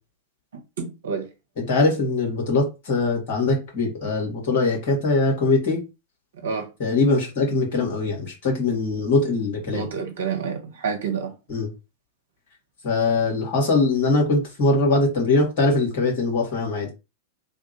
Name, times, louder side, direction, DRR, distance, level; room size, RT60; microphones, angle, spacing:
voice 1, 0.5-1.3 6.4-6.7 9.7-11.3, right 6 dB, 65° right, 1.0 m, -29 dB
voice 2, 1.7-5.8 6.8-9.8 11.5-11.7 12.8-16.9, left 3 dB, 50° left, 1.9 m, -22 dB
3.4 x 2.4 x 4.5 m
figure-of-eight pair, 90°, 0 cm